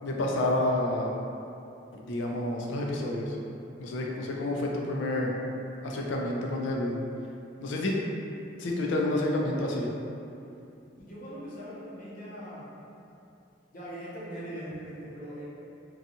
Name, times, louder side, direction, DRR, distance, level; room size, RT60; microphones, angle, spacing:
voice 1, 0.0-1.1 1.9-3.4 3.8-5.3 5.8-7.0 7.6-8.0 8.6-9.9, left 1 dB, 80° left, -1 dB, 0.4 m, -29 dB
voice 2, 11.0-12.7 13.7-15.4, equal, 45° left, -8 dB, 0.7 m, -41 dB
2.7 x 2.3 x 2.6 m, 2.7 s
head